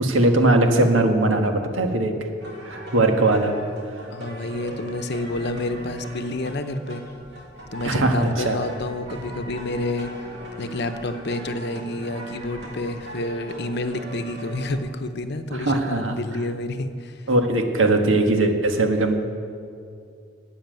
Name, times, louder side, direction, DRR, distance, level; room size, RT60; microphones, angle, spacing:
voice 1, 0.0-2.1 2.6-3.5 7.8-8.6 15.5-16.1 17.3-19.2, right 2 dB, 85° right, 4 dB, 1.6 m, -20 dB
sound 1, 2.4-14.8, right 1 dB, 60° right, 2.9 m, -39 dB
voice 2, 4.1-7.0 7.7-10.1 10.6-17.2, left 2 dB, 60° left, 9 dB, 0.9 m, -29 dB
13.0 x 8.7 x 9.2 m, 2.4 s
head